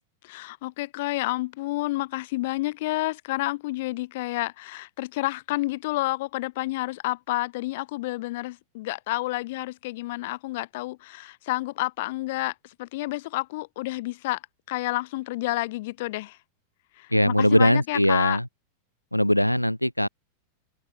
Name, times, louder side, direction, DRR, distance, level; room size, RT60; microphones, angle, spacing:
voice 1, 0.2-14.4 14.7-16.4 17.0-18.4, left 19 dB, 50° left, 2.2 m, -30 dB
voice 2, 17.1-18.5 19.1-20.1, equal, 90° left, 0.7 m, -21 dB
figure-of-eight pair, 90°, 0 cm